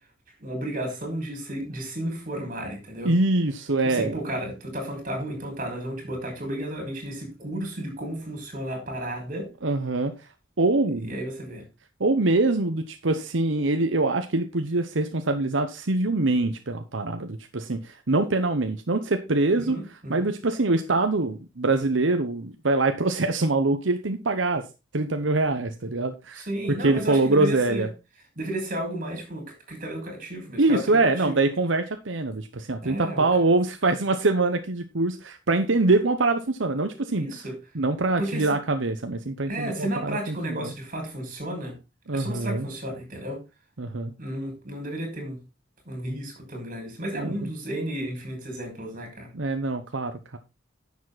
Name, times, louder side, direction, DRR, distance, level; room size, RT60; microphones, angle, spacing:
voice 1, 0.4-3.1 3.8-9.5 11.0-11.6 19.7-20.4 26.3-27.9 28.4-31.0 31.3-31.4 32.8-33.2 37.1-37.6 38.2-38.6 39.5-41.8 42.1-43.4 44.2-45.4 45.8-49.3, right 1 dB, 45° right, 6.0 m, -33 dB
voice 2, 3.0-4.2 9.6-10.1 10.6-11.1 12.0-19.8 20.1-24.6 24.9-26.4 26.8-27.9 30.6-37.3 37.7-40.7 42.1-42.7 43.8-44.1 47.1-47.3 49.3-50.4, right 2 dB, 90° right, 1.0 m, -24 dB
10.5 x 7.3 x 4.1 m
head